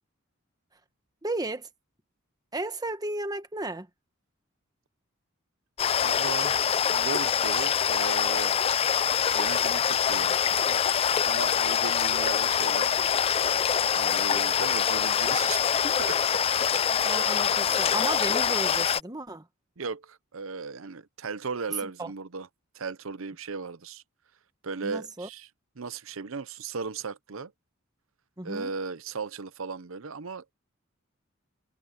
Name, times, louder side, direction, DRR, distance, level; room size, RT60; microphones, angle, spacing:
voice 1, 1.2-1.7 2.5-3.9 17.0-19.4 22.0-22.1 24.8-25.3 28.4-28.7, right 2 dB, 20° right, 1.2 m, -34 dB
sound 1, 5.8-19.0, left 8 dB, 25° left, 0.3 m, -25 dB
voice 2, 6.0-8.6 9.3-10.8 11.2-12.9 13.9-16.4 16.8-17.0 19.8-22.5 22.7-24.0 24.6-25.5 25.8-27.5 28.4-30.5, right 5 dB, 70° right, 0.8 m, -37 dB
head